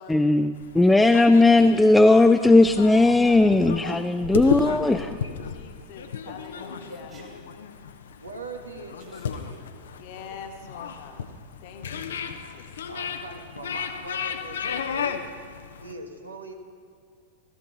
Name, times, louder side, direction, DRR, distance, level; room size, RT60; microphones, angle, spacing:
voice 1, 0.1-5.2, left 2 dB, 5° left, 9 dB, 0.3 m, -17 dB
sound 1, 0.5-15.9, left 7 dB, 65° left, 0.7 m, -34 dB
voice 2, 1.1-3.6 4.8-7.2 10.0-11.3 11.6-12.7, left 6 dB, 45° left, 5 dB, 1.4 m, -43 dB
Human voice, 6.4-7.4 9.0-9.6, right 4 dB, 25° right, 2.5 m, -51 dB
voice 3, 6.6-7.4 8.2-9.7 11.1-11.2 11.8-12.0 12.9-15.2 15.8-16.5, right 2 dB, 80° right, 4 dB, 1.4 m, -41 dB
15.5 x 14.0 x 4.0 m, 2.1 s
figure-of-eight pair, 90°, 0 cm